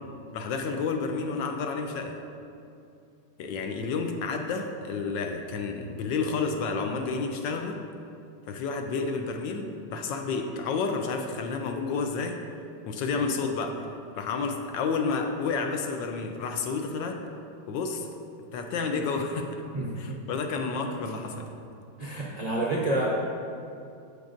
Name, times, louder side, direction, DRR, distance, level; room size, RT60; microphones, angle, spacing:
voice 1, 0.3-2.1 3.4-7.8 8.5-12.4 12.9-13.9 14.2-17.2 17.7-18.1 18.5-19.6 20.0-21.5, left 4 dB, 75° left, 4 dB, 1.2 m, -30 dB
voice 2, 19.7-20.2 22.0-23.1, right 2 dB, 75° right, -4 dB, 0.3 m, -29 dB
11.5 x 6.7 x 2.6 m, 2.5 s
omnidirectional pair, 2.2 m